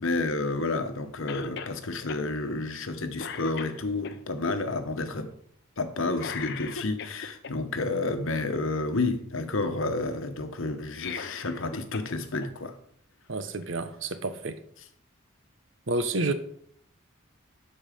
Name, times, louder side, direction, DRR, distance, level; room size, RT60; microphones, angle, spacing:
voice 1, 0.0-5.3 5.8-12.8, left 3 dB, 70° left, 1.1 m, -30 dB
Cough, 1.3-1.8 2.1-2.2 2.7-2.9 3.2-4.2 6.1-7.5 10.8-12.1 12.4-12.5 13.6-13.7, left 5 dB, 55° left, 0.7 m, -38 dB
voice 2, 13.3-14.6 15.9-16.3, right 2 dB, 65° right, 0.9 m, -29 dB
12.5 x 4.8 x 5.1 m
head